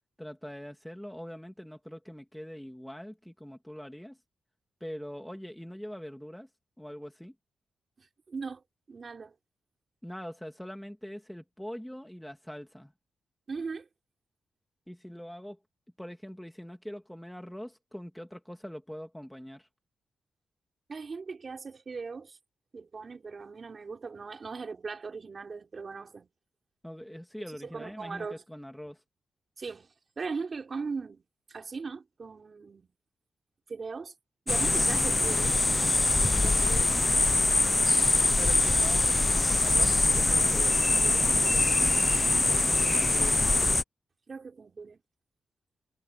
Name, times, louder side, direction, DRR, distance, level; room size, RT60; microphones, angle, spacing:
voice 1, 0.2-4.2 4.8-6.5 6.8-7.3 10.0-12.9 14.9-15.6 16.0-19.7 26.8-29.0 36.4-37.0 38.4-42.1 42.8-43.5, equal, 5° left, 2.4 m, -43 dB
voice 2, 8.0-9.3 13.5-13.9 20.9-22.4 22.7-26.3 27.6-28.4 29.6-31.2 31.5-32.9 33.7-34.1 34.5-35.6 36.4-37.6 44.3-45.0, right 4 dB, 40° right, 3.9 m, -39 dB
sound 1, 34.5-43.8, left 2 dB, 20° left, 0.7 m, -24 dB
cardioid pair, 95°, 0 cm